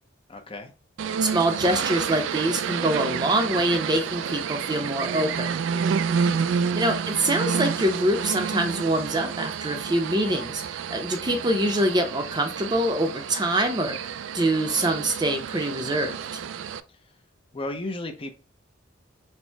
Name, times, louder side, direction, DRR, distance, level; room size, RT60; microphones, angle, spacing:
voice 1, 0.3-0.7 6.2-6.5 16.9-17.1 17.5-18.4, left 2 dB, 30° left, 5 dB, 0.5 m, -35 dB
sound 1, 1.0-16.8, right 6 dB, 75° right, 0.3 m, -29 dB
voice 2, 1.2-5.5 6.8-16.4, right 1 dB, 20° right, 5 dB, 0.6 m, -25 dB
4.4 x 2.1 x 4.5 m, 0.33 s
head